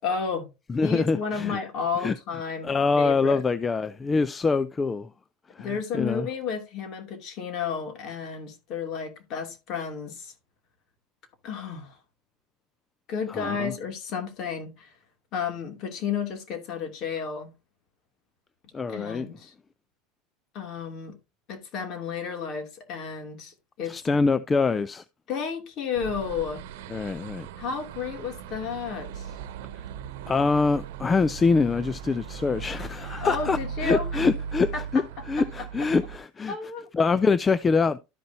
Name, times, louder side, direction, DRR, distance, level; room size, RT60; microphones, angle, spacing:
voice 1, 0.0-0.5 0.8-3.4 5.6-10.3 11.4-12.0 13.1-14.9 15.3-17.5 18.9-19.5 20.5-21.2 21.5-24.3 25.3-26.6 27.6-29.3 33.2-34.1 34.7-34.8 36.5-36.9, left 6 dB, 45° left, 2.6 m, -32 dB
voice 2, 0.7-1.6 2.0-2.1 2.6-5.1 5.5-6.3 13.3-13.7 18.7-19.3 23.8-25.0 26.9-27.5 29.7-29.8 30.3-36.6 36.9-38.0, left 4 dB, 15° left, 0.3 m, -25 dB
sound 1, 25.9-36.2, right 7 dB, 80° right, 0.9 m, -38 dB
13.0 x 5.3 x 2.8 m
supercardioid pair, 140°, 0 cm